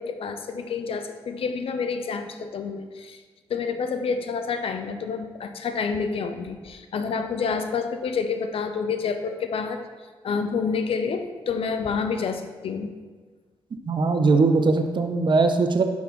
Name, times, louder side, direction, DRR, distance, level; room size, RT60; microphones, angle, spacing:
voice 1, 0.0-3.2 3.5-9.8 10.2-12.9, left 5 dB, 65° left, 7 dB, 0.6 m, -28 dB
voice 2, 13.9-15.8, right 3 dB, 50° right, 7 dB, 0.7 m, -20 dB
6.0 x 5.7 x 3.7 m, 1.4 s
supercardioid pair, 45°, 10 cm